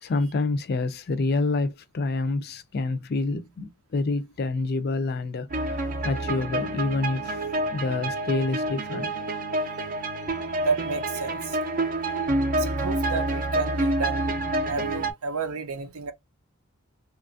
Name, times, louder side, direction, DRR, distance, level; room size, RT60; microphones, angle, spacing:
voice 1, 0.0-9.1, left 3 dB, 45° left, 0.4 m, -28 dB
sound 1, 5.5-15.1, right 2 dB, 40° right, 0.5 m, -28 dB
voice 2, 10.4-11.8 12.5-14.3 14.6-16.1, right 5 dB, 85° right, 0.6 m, -31 dB
2.9 x 2.4 x 2.5 m
head